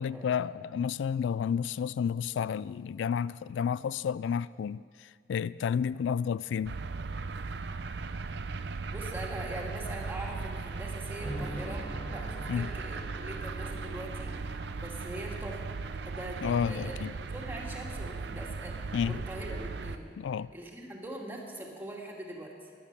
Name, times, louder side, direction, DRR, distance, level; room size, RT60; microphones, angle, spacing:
voice 1, 0.0-6.8 12.5-12.7 16.4-17.1 18.9-19.2 20.2-20.5, left 7 dB, 85° left, 0.3 m, -31 dB
sound 1, 6.7-20.0, right 4 dB, 70° right, 0.6 m, -38 dB
voice 2, 8.9-15.6 16.0-16.9 17.3-20.1 20.5-22.5, right 1 dB, 10° right, 2.2 m, -42 dB
sound 2, 11.2-19.6, equal, 25° left, 4.5 m, -46 dB
17.0 x 11.0 x 6.9 m
head